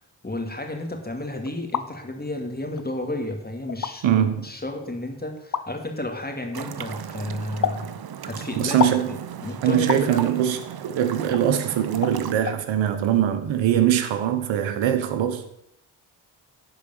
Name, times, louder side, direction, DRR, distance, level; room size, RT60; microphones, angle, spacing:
voice 1, 0.2-8.0 8.2-10.3, left 1 dB, 20° left, 2.5 m, -32 dB
sound 1, 1.5-1.9 2.8-2.9 3.7-3.9 5.5-5.7 7.6-7.8 8.8-9.0 9.9-10.1 11.3-11.4 12.0-12.2 12.5-12.6, left 7 dB, 40° left, 0.8 m, -26 dB
voice 2, 4.0-4.4 8.6-9.1 9.6-15.4, right 10 dB, 80° right, 1.2 m, -22 dB
sound 2, 6.5-12.3, right 9 dB, 55° right, 0.9 m, -36 dB
11.0 x 5.0 x 6.9 m
supercardioid pair, 45°, 45 cm